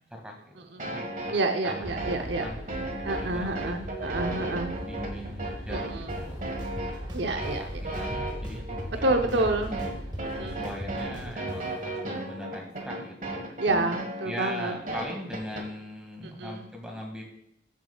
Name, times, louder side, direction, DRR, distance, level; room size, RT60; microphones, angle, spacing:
voice 1, 0.1-1.1 1.6-1.9 2.2-2.6 3.0-4.1 4.8-6.7 7.4-9.5 10.3-13.4 14.2-17.2, equal, 5° right, 0 dB, 2.0 m, -40 dB
sound 1, 0.8-15.6, right 2 dB, 45° right, 1.5 m, -35 dB
voice 2, 1.3-2.4 3.0-4.7 5.7-6.1 7.1-7.8 9.0-9.7 10.2-10.6 13.6-14.7 16.4-16.7, right 2 dB, 75° right, 5 dB, 0.9 m, -28 dB
sound 2, 1.8-11.3, equal, 55° left, 3.7 m, -39 dB
sound 3, 6.1-6.2 6.6-7.5 7.9-9.0 9.3-11.6, equal, 25° right, 1.4 m, -41 dB
13.5 x 7.5 x 2.4 m, 0.77 s
head